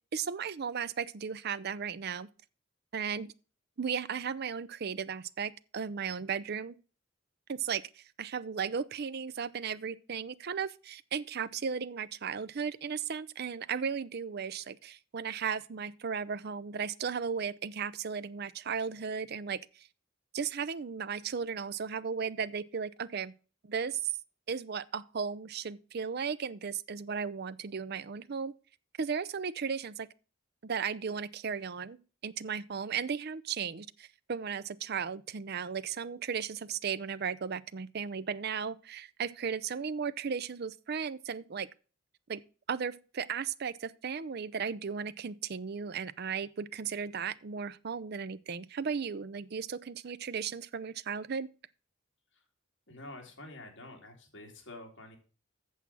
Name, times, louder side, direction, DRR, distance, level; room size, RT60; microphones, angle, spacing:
voice 1, 0.1-2.3 2.9-3.3 3.8-6.7 7.5-19.9 20.3-23.3 23.6-24.1 24.5-28.5 29.0-30.1 30.6-41.7 42.3-42.4 42.7-51.5, right 6 dB, 55° right, 0.5 m, -35 dB
voice 2, 52.9-55.2, left 2 dB, 65° left, 2.9 m, -48 dB
8.3 x 7.0 x 6.0 m
head